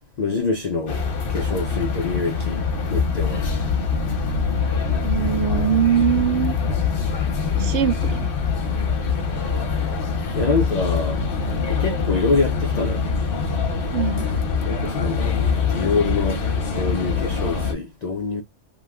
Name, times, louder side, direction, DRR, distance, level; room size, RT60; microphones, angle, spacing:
voice 1, 0.2-1.0 1.3-2.6 2.9-3.5 10.3-11.3 11.7-13.1 14.6-15.4 15.7-16.4 16.7-18.4, left 4 dB, 70° left, 0.4 m, -25 dB
sound 1, 0.9-17.7, left 5 dB, 50° left, 0.9 m, -24 dB
voice 2, 5.0-6.5 7.5-8.3 13.9-14.3, right 9 dB, 70° right, 0.9 m, -22 dB
3.0 x 2.1 x 3.4 m
omnidirectional pair, 1.3 m